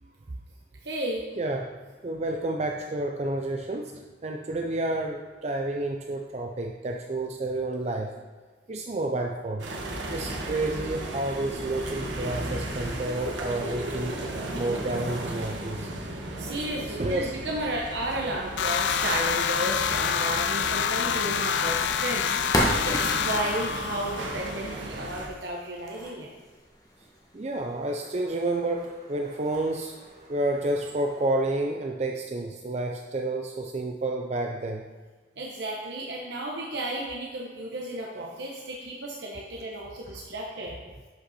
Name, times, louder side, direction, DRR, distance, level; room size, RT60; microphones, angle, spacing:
voice 1, 0.8-1.3 16.4-26.3 35.4-40.7, right 1 dB, 70° right, -2 dB, 1.0 m, -33 dB
voice 2, 1.3-1.8 2.0-8.1 8.7-9.7 10.1-14.2 14.5-16.1 16.9-17.4 27.3-34.9, right 2 dB, 35° right, 2 dB, 0.4 m, -30 dB
sound 1, 9.6-25.3, right 1 dB, 85° right, 1.4 m, -36 dB
sound 2, 18.6-24.7, left 7 dB, 75° left, 0.4 m, -27 dB
splitting logs, 21.8-31.3, equal, 20° left, 1.3 m, -36 dB
11.0 x 5.5 x 4.2 m, 1.4 s
head